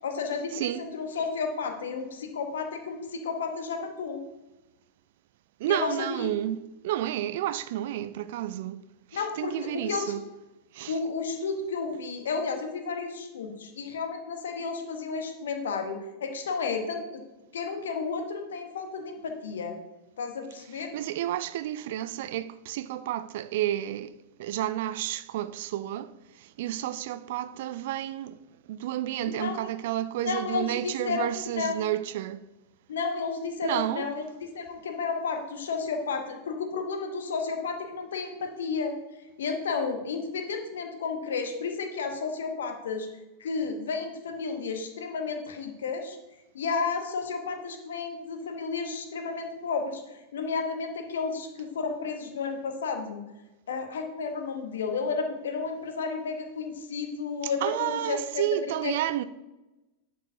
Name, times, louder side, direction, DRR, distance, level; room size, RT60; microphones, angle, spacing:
voice 1, 0.0-4.2 5.7-6.3 9.1-10.1 10.9-17.2 17.5-19.8 20.2-20.9 29.2-29.6 30.2-31.8 32.9-34.2 34.5-38.9 39.4-43.1 43.4-46.2 46.5-53.2 53.7-58.4 58.8-58.9, left 5 dB, 65° left, 1.0 m, -32 dB
voice 2, 0.5-0.9 5.6-8.8 9.1-10.2 10.7-11.0 20.8-32.5 33.6-34.1 57.4-59.2, right 12 dB, 55° right, 0.3 m, -31 dB
10.5 x 4.7 x 2.7 m
figure-of-eight pair, 90°, 0 cm